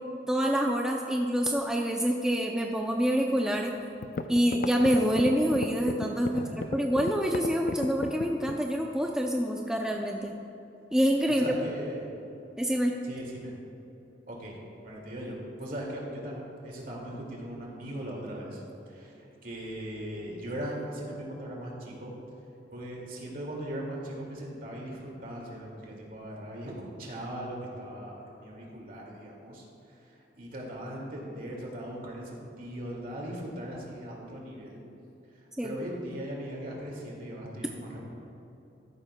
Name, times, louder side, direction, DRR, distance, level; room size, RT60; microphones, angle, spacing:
voice 1, 0.3-3.8 4.3-10.3 10.9-11.5 12.6-13.0 35.6-35.8, equal, 5° right, 0 dB, 0.4 m, -26 dB
sound 1, 3.6-3.7 4.0-8.7, left 4 dB, 55° left, 0.4 m, -33 dB
voice 2, 6.3-6.7 11.4-12.1 13.0-13.5 14.3-14.6 14.8-19.1 19.4-22.1 22.7-29.6 30.4-34.8 35.6-38.1, right 1 dB, 50° right, -2 dB, 2.2 m, -39 dB
13.5 x 11.5 x 2.2 m, 3.0 s
head